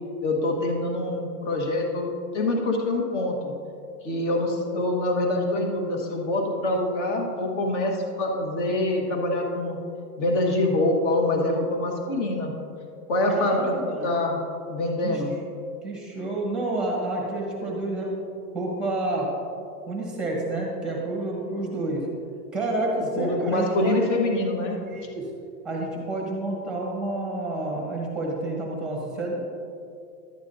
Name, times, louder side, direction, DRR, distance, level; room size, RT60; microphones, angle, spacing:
voice 1, 0.2-3.5 4.0-9.8 10.2-12.5 13.1-13.7 14.0-14.4 14.7-15.3 23.0-24.8, left 2 dB, 45° left, 1 dB, 1.5 m, -25 dB
voice 2, 13.3-14.1 15.0-15.2 15.8-18.1 18.5-19.3 19.9-22.0 22.5-24.0 24.8-25.2 25.6-29.4, right 2 dB, ahead, -1 dB, 0.9 m, -29 dB
11.5 x 9.2 x 2.7 m, 2.4 s
supercardioid pair, 170°, 48 cm